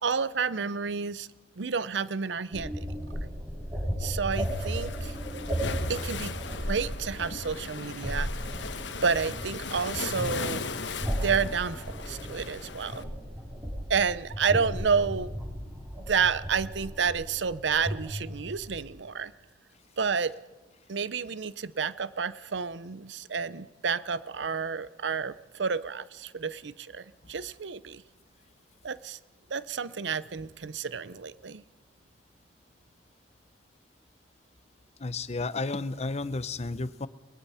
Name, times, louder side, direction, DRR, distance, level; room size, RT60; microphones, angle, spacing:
voice 1, 0.0-1.3 1.6-2.9 4.0-5.2 5.9-8.3 9.0-10.7 11.2-13.1 13.9-15.3 16.1-19.3 20.0-20.3 20.9-28.0 28.8-29.2 29.5-31.6, right 5 dB, 75° right, 17 dB, 0.7 m, -30 dB
sound 1, 2.5-18.9, equal, 15° right, 6.2 m, -35 dB
Waves surf, 4.3-13.0, left 4 dB, 75° left, 1.2 m, -38 dB
voice 2, 35.0-37.1, left 3 dB, 35° left, 15 dB, 0.8 m, -32 dB
21.5 x 21.5 x 5.7 m, 1.2 s
head